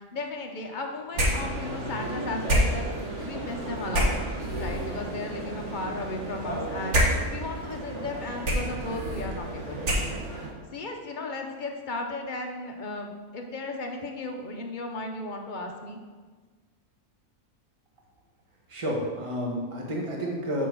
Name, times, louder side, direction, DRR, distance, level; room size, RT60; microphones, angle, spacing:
voice 1, 0.1-2.9 3.2-7.0 7.3-9.9 10.7-16.0, left 2 dB, 40° left, 2 dB, 0.9 m, -35 dB
sound 1, 1.1-10.5, equal, 55° right, 1.6 m, -29 dB
voice 2, 18.7-20.7, equal, 25° right, -1 dB, 1.2 m, -30 dB
7.4 x 4.5 x 6.0 m, 1.4 s
omnidirectional pair, 1.5 m